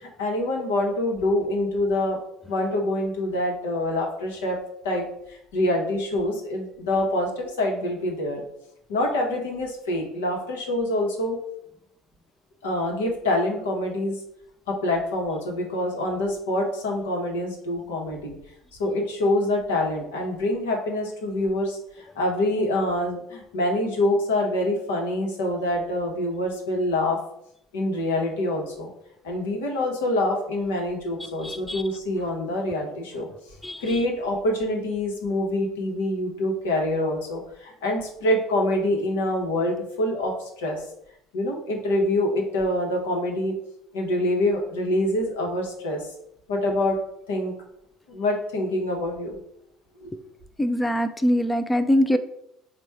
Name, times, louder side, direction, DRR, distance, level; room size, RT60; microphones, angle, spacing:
voice 1, 0.0-2.2 2.5-4.6 4.8-8.4 8.9-11.4 12.6-14.2 14.7-18.4 18.8-21.8 22.1-27.2 27.7-28.9 29.2-33.3 33.8-40.8 41.3-43.5 43.9-46.1 46.5-47.0 47.3-47.5 48.1-49.3 50.0-50.1, left 1 dB, 80° left, 1 dB, 0.9 m, -25 dB
voice 2, 31.4-31.8 33.6-34.0 50.1-50.2 50.6-52.2, equal, 10° left, 9 dB, 0.3 m, -23 dB
4.2 x 2.2 x 4.6 m, 0.77 s
hypercardioid pair, 65°, 0 cm